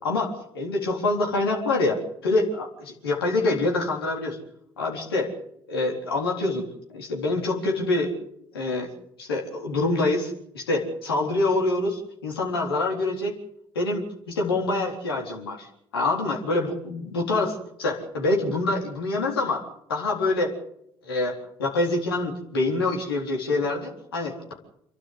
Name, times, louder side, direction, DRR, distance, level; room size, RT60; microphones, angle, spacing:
voice 1, 0.0-4.4 4.8-5.3 5.7-6.6 6.9-8.1 8.5-8.9 9.2-13.4 13.7-15.7 15.9-19.6 19.9-20.5 21.0-24.5, left 2 dB, 85° left, 0 dB, 3.9 m, -26 dB
28.0 x 12.0 x 8.3 m, 0.74 s
hypercardioid pair, 50°, 12 cm